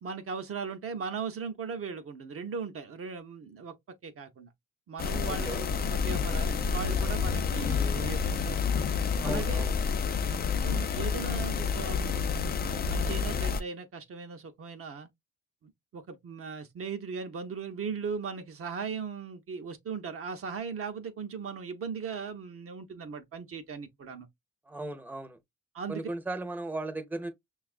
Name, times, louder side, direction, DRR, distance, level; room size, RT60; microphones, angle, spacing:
voice 1, 0.0-3.8 4.0-4.5 4.9-8.3 9.2-9.7 10.6-15.1 15.6-24.3 25.7-26.1, right 5 dB, 50° right, 0.7 m, -38 dB
sound 1, 5.0-13.6, left 6 dB, 30° left, 0.4 m, -29 dB
voice 2, 5.3-5.6 9.2-9.7 24.7-25.4 25.9-27.3, right 2 dB, 5° right, 0.7 m, -36 dB
5.6 x 2.3 x 2.4 m
cardioid pair, 90°, 30 cm